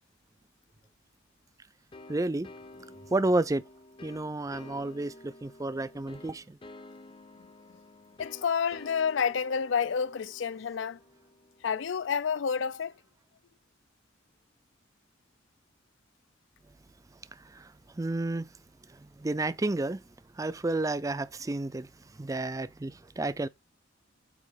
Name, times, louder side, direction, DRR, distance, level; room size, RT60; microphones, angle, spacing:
sound 1, 1.9-12.4, left 2 dB, 25° left, 0.7 m, -51 dB
voice 1, 2.1-2.5 3.1-3.6 4.0-6.6 17.5-18.5 19.0-20.0 20.4-21.9 22.2-23.5, right 2 dB, 15° right, 0.4 m, -31 dB
voice 2, 8.2-11.0 11.6-12.9, left 6 dB, 65° left, 0.4 m, -29 dB
8.7 x 2.9 x 6.2 m
head